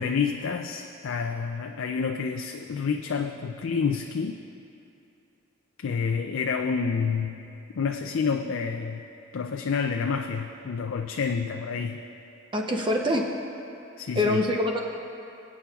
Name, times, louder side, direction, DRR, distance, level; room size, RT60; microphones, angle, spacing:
voice 1, 0.0-4.4 5.8-7.4 7.8-9.0 9.3-12.0 14.0-14.4, left 5 dB, 65° left, 4 dB, 0.4 m, -28 dB
voice 2, 12.5-13.3 14.1-14.8, left 1 dB, 20° right, 0 dB, 0.7 m, -24 dB
24.5 x 8.4 x 2.4 m, 2.6 s
head